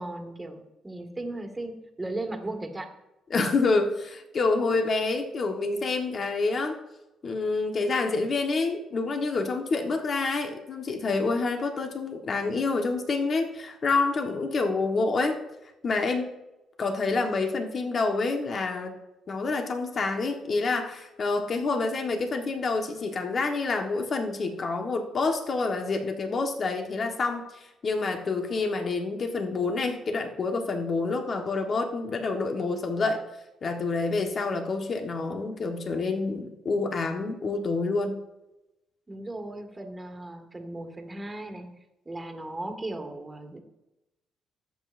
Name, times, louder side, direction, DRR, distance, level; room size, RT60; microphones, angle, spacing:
voice 1, 0.0-2.9 39.1-41.7 42.1-43.6, right 2 dB, 20° right, 4 dB, 1.9 m, -36 dB
voice 2, 3.3-6.8 7.2-15.4 15.8-16.3 16.8-19.0 19.3-33.2 33.6-38.2, left 3 dB, 45° left, 4 dB, 1.3 m, -27 dB
18.5 x 8.2 x 2.6 m, 0.95 s
cardioid pair, 90°, 0 cm